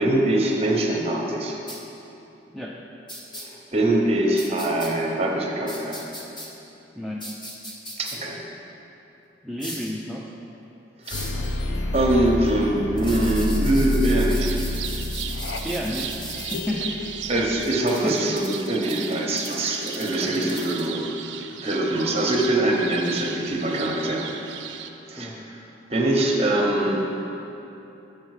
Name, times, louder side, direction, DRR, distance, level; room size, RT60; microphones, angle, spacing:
voice 1, 0.0-1.6 3.4-6.0 8.0-8.4 11.0-11.2 11.9-14.5 17.3-21.2 21.6-24.3 25.1-25.5 25.9-27.1, right 1 dB, 35° right, 0 dB, 0.8 m, -23 dB
sound 1, 1.7-1.8 3.1-3.4 4.4-4.9 5.7-6.5 7.2-8.2 9.6-9.9 11.0-11.4 13.0-16.6 17.6-20.9, equal, 25° left, 1.0 m, -38 dB
voice 2, 7.0-7.3 9.4-10.4 15.6-16.9 18.0-18.3 20.2-20.8 25.2-25.5, equal, ahead, -3 dB, 0.3 m, -32 dB
sound 2, 11.1-17.7, left 1 dB, 90° left, 0.5 m, -28 dB
sound 3, 14.4-24.9, right 8 dB, 75° right, 0.4 m, -36 dB
7.0 x 4.8 x 4.8 m, 2.9 s
head